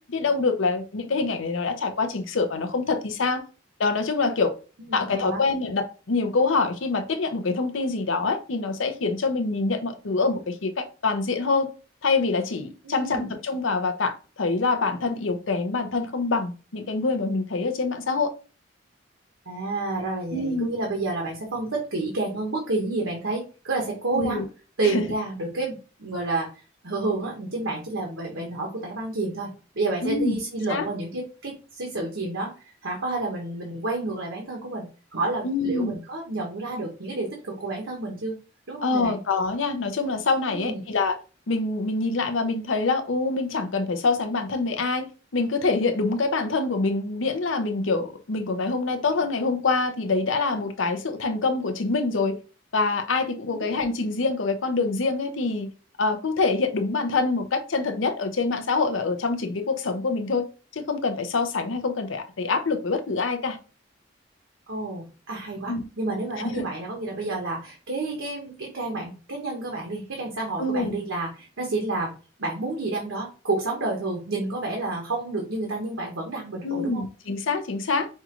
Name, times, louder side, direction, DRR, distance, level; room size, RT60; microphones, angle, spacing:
voice 1, 0.1-3.4 3.8-4.5 4.9-11.7 12.0-18.3 20.3-20.7 24.1-24.4 24.8-25.0 30.0-30.4 30.7-30.9 35.4-35.9 38.8-41.2 41.5-45.1 45.3-52.3 52.7-55.7 56.0-60.5 60.7-63.6 65.7-65.8 66.4-66.7 70.6-71.0 76.6-78.1, left 3 dB, 80° left, 0.7 m, -25 dB
voice 2, 4.8-5.4 12.8-13.3 19.5-24.4 24.8-26.5 26.8-32.5 32.8-34.9 35.1-38.3 38.7-39.2 40.4-40.9 53.5-53.7 64.7-72.1 72.4-77.0, right 2 dB, 80° right, 1.1 m, -30 dB
5.4 x 2.4 x 2.9 m
head